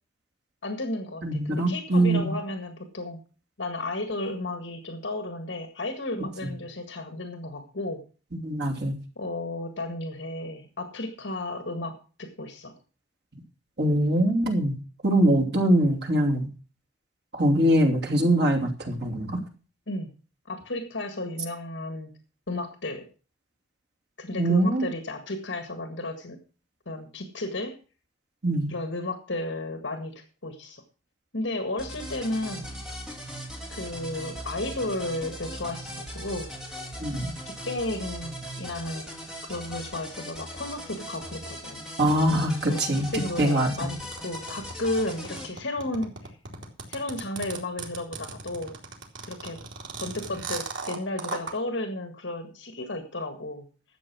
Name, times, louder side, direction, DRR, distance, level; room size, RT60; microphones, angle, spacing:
voice 1, 0.6-3.2 3.6-8.0 9.2-12.7 19.9-20.1 20.5-22.1 22.5-23.1 24.2-26.4 26.9-27.8 28.7-30.8 31.3-32.7 33.7-36.5 37.5-39.1 39.4-41.9 42.7-42.8 43.1-44.0 44.2-46.4 46.9-48.8 49.2-49.6 50.0-53.7, left 2 dB, 70° left, 7 dB, 1.7 m, -33 dB
voice 2, 1.2-2.3 6.4-6.5 8.3-9.0 13.8-14.7 15.0-16.5 17.3-19.4 24.4-24.9 28.4-28.7 37.0-37.3 42.0-43.1 43.4-43.9, right 1 dB, 55° right, 1 dB, 2.8 m, -23 dB
sound 1, 31.8-45.5, equal, 5° right, 2.8 m, -39 dB
sound 2, 44.1-51.5, right 4 dB, 85° right, 2.9 m, -36 dB
12.5 x 7.9 x 6.1 m, 0.36 s
head